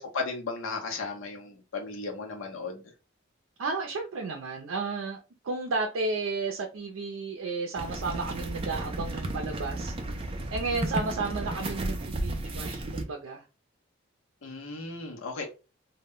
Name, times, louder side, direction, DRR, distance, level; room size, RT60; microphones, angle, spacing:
voice 1, 0.0-2.8 14.4-15.5, left 3 dB, 80° left, 2 dB, 0.7 m, -35 dB
voice 2, 3.6-5.2 5.4-13.4, right 3 dB, 90° right, 2 dB, 0.5 m, -33 dB
sound 1, 7.8-13.0, right 1 dB, 25° right, 0.4 m, -33 dB
2.1 x 2.0 x 3.5 m, 0.31 s
head